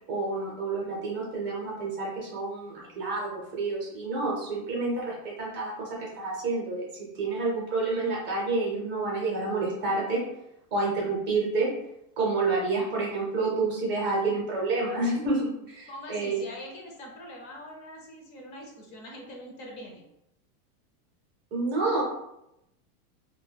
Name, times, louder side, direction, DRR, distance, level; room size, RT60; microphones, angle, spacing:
voice 1, 0.1-10.2 10.7-11.7 12.2-16.4 21.5-22.0, right 3 dB, 25° right, -3 dB, 0.5 m, -29 dB
voice 2, 15.9-20.0, left 1 dB, 40° left, 0 dB, 0.6 m, -43 dB
2.2 x 2.1 x 3.2 m, 0.83 s
supercardioid pair, 150°, 45 cm